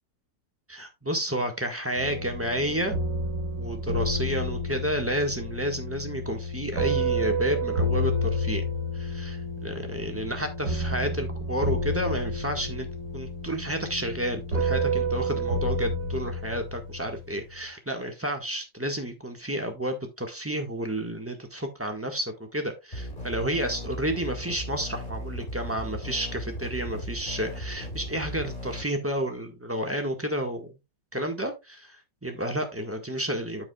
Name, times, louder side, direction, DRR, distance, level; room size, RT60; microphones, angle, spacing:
voice 1, 0.7-2.9 3.6-8.6 8.9-12.9 13.1-30.7 31.1-32.0 32.2-33.7, equal, 10° right, 4 dB, 1.4 m, -31 dB
sound 1, 1.9-17.4, equal, 80° right, 4.9 m, -30 dB
sound 2, 22.9-28.8, equal, 30° left, 3.1 m, -36 dB
13.5 x 4.9 x 2.3 m, 0.22 s
omnidirectional pair, 1.9 m